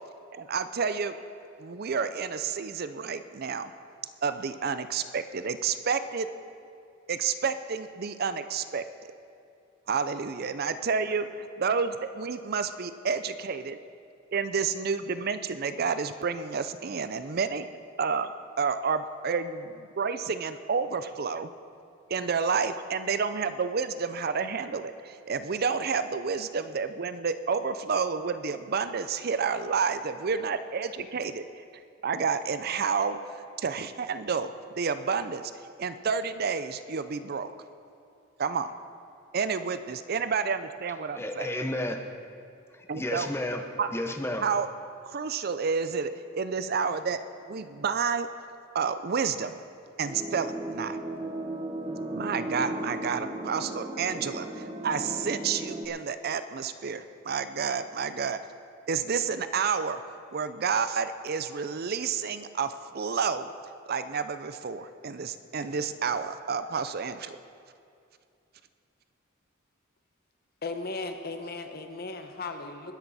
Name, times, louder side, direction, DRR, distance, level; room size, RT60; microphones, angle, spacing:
voice 1, 0.3-1.2 1.6-3.7 4.2-6.3 7.1-8.8 9.9-13.8 14.3-17.7 18.0-18.3 18.6-21.5 22.1-31.6 32.0-35.4 35.8-37.5 38.4-38.7 39.3-41.5 42.9-43.3 43.8-43.9 44.4-44.7 45.0-47.2 47.5-48.3 48.7-49.5 50.0-51.0 52.1-58.4 58.9-60.0 60.3-63.5 63.9-67.3, right 5 dB, 50° right, 11 dB, 0.5 m, -30 dB
voice 2, 41.1-42.0 43.0-43.7 43.9-44.5, left 1 dB, 10° left, 5 dB, 0.9 m, -31 dB
sound 1, 50.0-55.9, right 1 dB, 30° right, 1.0 m, -36 dB
voice 3, 70.6-72.9, left 3 dB, 50° left, 6 dB, 1.0 m, -36 dB
20.5 x 10.5 x 4.2 m, 2.5 s
head